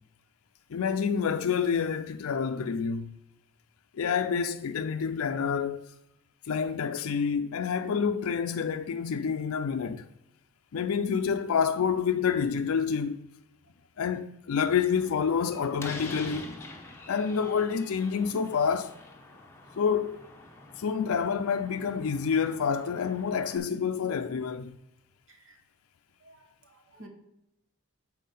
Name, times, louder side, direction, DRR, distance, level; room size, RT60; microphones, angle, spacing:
voice 1, 0.7-3.1 4.0-5.9 6.5-10.0 10.7-13.2 14.0-16.6 17.1-18.9 19.8-20.2 20.8-24.8, left 6 dB, 75° left, 0.4 m, -28 dB
Slam, 15.0-23.6, left 2 dB, 10° left, 0.8 m, -46 dB
voice 2, 26.7-27.1, right 1 dB, 60° right, 1.5 m, -51 dB
7.4 x 4.6 x 5.4 m
head